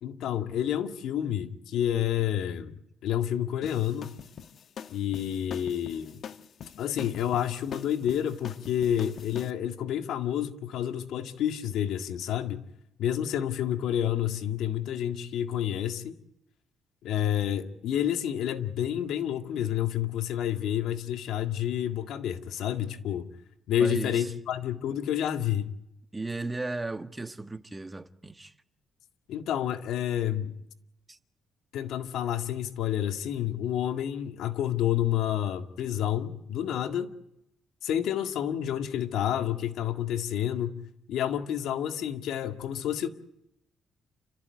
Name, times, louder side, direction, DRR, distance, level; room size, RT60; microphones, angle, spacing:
voice 1, 0.0-2.7 3.0-4.1 4.9-6.2 6.8-12.6 13.0-16.2 17.0-23.3 23.7-25.7 29.3-30.6 31.7-37.1 37.8-40.8 41.1-43.1, left 10 dB, 80° left, 2.0 m, -29 dB
sound 1, 3.6-9.5, left 7 dB, 60° left, 1.2 m, -43 dB
voice 2, 23.8-24.3 26.1-28.5 31.1-31.2, right 2 dB, 15° right, 1.6 m, -35 dB
29.5 x 14.5 x 9.6 m
cardioid pair, 90°, 0 cm